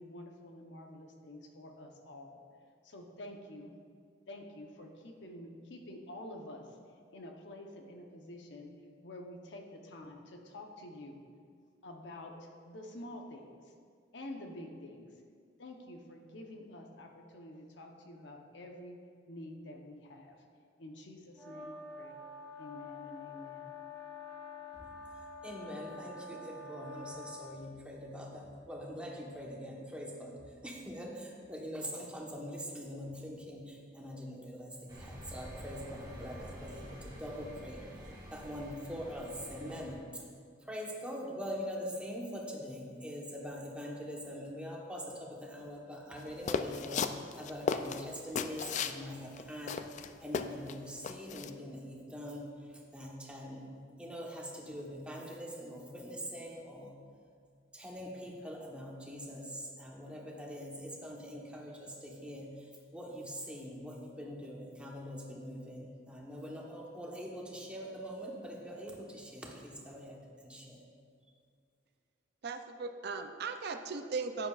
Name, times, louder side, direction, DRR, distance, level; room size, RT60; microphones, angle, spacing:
voice 1, 0.0-2.4 2.8-3.7 4.3-6.6 7.1-8.7 9.0-11.2 11.8-13.6 14.1-15.1 15.6-19.0 19.3-20.4 20.8-22.2 22.6-23.7, left 1 dB, 70° left, 3 dB, 0.9 m, -48 dB
sound 1, 21.4-27.6, left 3 dB, 10° left, 2.2 m, -47 dB
voice 2, 25.4-37.8 38.3-40.2 40.7-49.8 50.2-52.6 52.9-57.0 57.7-70.9, equal, 5° right, -2 dB, 1.1 m, -43 dB
sound 2, 34.9-40.0, equal, 25° right, 2.0 m, -48 dB
sound 3, 46.5-49.0 49.4-49.5 49.7-50.7 51.0-51.5, left 5 dB, 40° left, 0.3 m, -34 dB
voice 3, 72.4-74.5, right 4 dB, 60° right, 7 dB, 0.5 m, -38 dB
10.5 x 8.7 x 2.4 m, 2.1 s
head